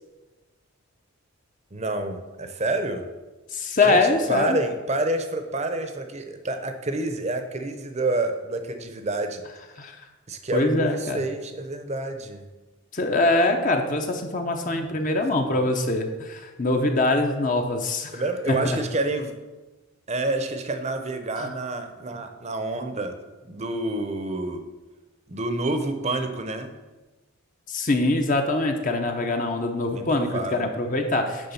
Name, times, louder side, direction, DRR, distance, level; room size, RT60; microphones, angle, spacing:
voice 1, 1.7-3.1 3.8-4.0 4.3-9.4 10.3-12.4 15.4-15.7 18.1-19.3 20.1-23.1 23.4-24.6 25.3-26.7 29.9-30.7, right 2 dB, 30° right, 7 dB, 0.7 m, -28 dB
voice 2, 3.5-4.6 9.8-10.0 10.5-11.2 12.9-18.8 21.4-21.5 27.7-31.5, left 2 dB, 35° left, 4 dB, 0.7 m, -23 dB
9.9 x 3.6 x 7.0 m, 1.2 s
head